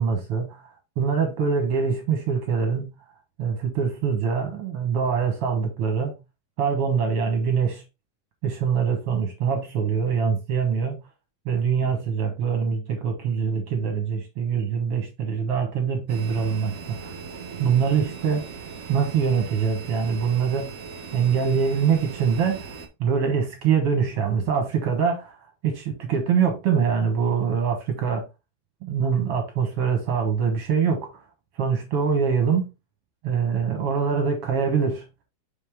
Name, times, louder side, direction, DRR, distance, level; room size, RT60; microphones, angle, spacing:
voice 1, 0.0-2.9 3.4-6.2 6.6-7.8 8.4-11.0 11.5-17.1 17.6-18.5 18.9-20.7 21.1-22.7 23.0-25.4 25.6-28.3 28.8-31.2 31.6-32.7 33.2-35.0, right 6 dB, 60° right, 1.8 m, -24 dB
sound 1, 16.1-22.9, right 5 dB, 90° right, 0.7 m, -38 dB
5.7 x 5.3 x 3.4 m
omnidirectional pair, 3.5 m